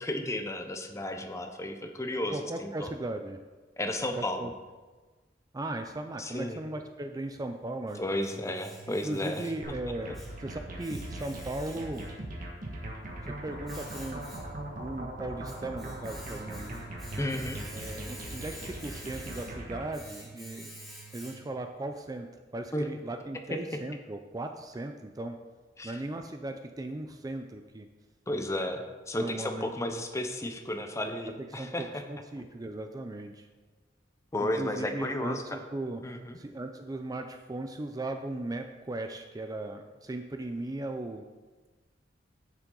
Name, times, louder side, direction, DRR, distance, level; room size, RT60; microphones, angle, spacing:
voice 1, 0.0-2.9 3.8-4.5 6.2-6.6 8.0-9.5 17.2-17.6 22.7-22.8 23.5-23.6 25.8-26.0 28.3-32.0 34.3-35.6 36.0-36.4, left 1 dB, 15° left, 5 dB, 0.8 m, -33 dB
voice 2, 2.3-3.4 4.2-4.5 5.5-8.0 8.9-10.1 10.4-12.1 13.2-14.2 14.8-16.8 17.7-20.7 21.1-22.3 22.5-25.4 25.8-27.9 29.2-29.7 31.5-33.5 34.6-36.0 36.4-41.2, right 2 dB, 20° right, 6 dB, 0.4 m, -37 dB
Domestic sounds home sounds, 7.5-21.7, right 2 dB, ahead, 2.2 m, -49 dB
sound 1, 9.6-19.9, right 1 dB, 50° right, 1.7 m, -40 dB
10.0 x 7.4 x 3.9 m, 1.3 s
head